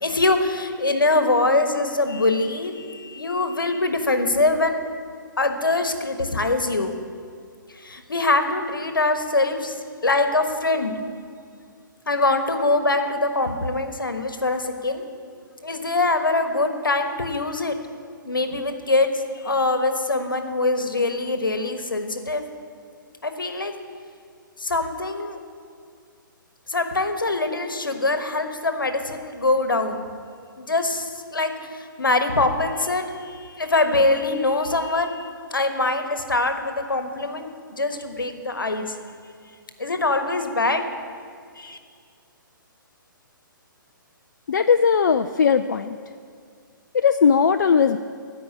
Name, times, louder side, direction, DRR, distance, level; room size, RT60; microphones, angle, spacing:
voice 1, 0.0-4.8 5.4-7.0 7.7-9.7 10.0-11.0 12.1-15.0 15.6-17.7 18.2-22.4 23.2-23.7 24.6-25.4 26.7-30.0 30.6-39.0 39.8-40.8 41.6-41.8, left 2 dB, 75° left, 7 dB, 1.2 m, -23 dB
voice 2, 44.5-46.0 46.9-48.0, left 6 dB, 60° left, 9 dB, 0.4 m, -18 dB
15.0 x 5.4 x 8.6 m, 2.2 s
figure-of-eight pair, 125°, 11 cm